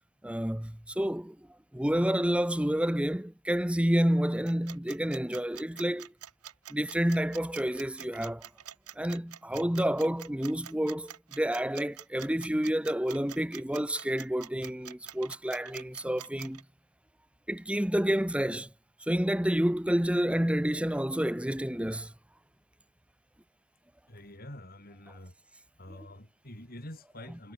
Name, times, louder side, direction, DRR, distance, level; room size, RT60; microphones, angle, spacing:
voice 1, 0.2-1.4 1.7-6.1 6.7-8.5 9.0-16.6 17.5-18.7 19.0-22.1, equal, 5° right, 0.8 m, -29 dB
sound 1, 4.5-16.6, right 11 dB, 85° right, 1.4 m, -46 dB
voice 2, 24.1-25.3 25.8-27.5, left 1 dB, 40° left, 6.4 m, -46 dB
head